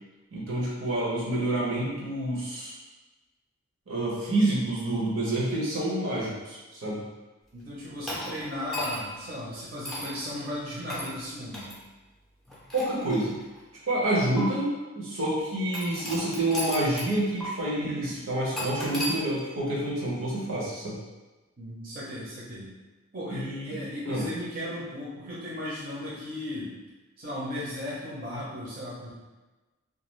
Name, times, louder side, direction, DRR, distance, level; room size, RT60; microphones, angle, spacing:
voice 1, 0.3-2.7 3.9-7.0 12.7-13.4 13.9-21.0 23.3-24.3, right 1 dB, 75° right, -5 dB, 0.8 m, -28 dB
voice 2, 7.5-11.7 17.8-18.2 21.6-22.7 23.1-26.7 27.2-29.1, left 1 dB, 45° right, -8 dB, 0.6 m, -36 dB
sound 1, 8.1-9.2 9.8-10.2 10.9-11.1 11.5-11.7 12.5-13.6 14.4-14.5 15.7-17.1 17.4-17.5 18.6-19.2, equal, ahead, 0.4 m, -35 dB
2.4 x 2.3 x 3.1 m, 1.2 s
head